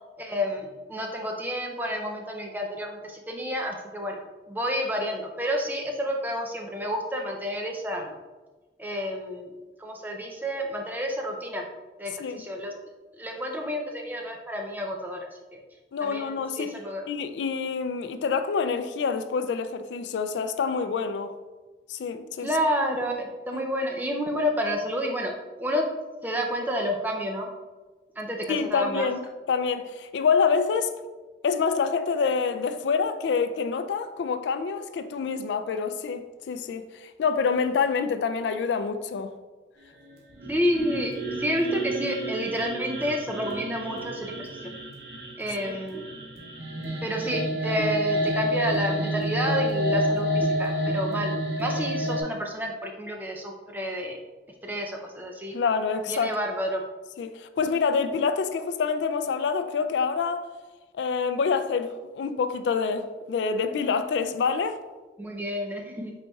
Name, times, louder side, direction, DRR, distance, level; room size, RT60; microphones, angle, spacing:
voice 1, 0.2-4.2 4.5-8.1 8.8-9.5 9.8-11.6 12.0-12.7 13.2-15.2 15.5-15.6 16.0-17.1 22.4-25.3 25.6-25.8 26.2-27.5 28.2-29.1 40.5-41.1 41.4-44.5 45.4-46.0 47.0-54.2 54.6-55.6 56.1-56.8 65.2-66.1, equal, 10° right, 0.5 m, -30 dB
voice 2, 15.9-16.8 17.1-21.3 21.9-22.5 23.5-23.6 28.5-30.9 31.4-39.3 45.7-45.8 55.5-56.4 57.2-60.5 60.9-64.8, left 5 dB, 90° left, 0.3 m, -27 dB
sound 1, 40.3-52.2, equal, 65° right, 1.1 m, -29 dB
5.3 x 4.2 x 2.3 m
head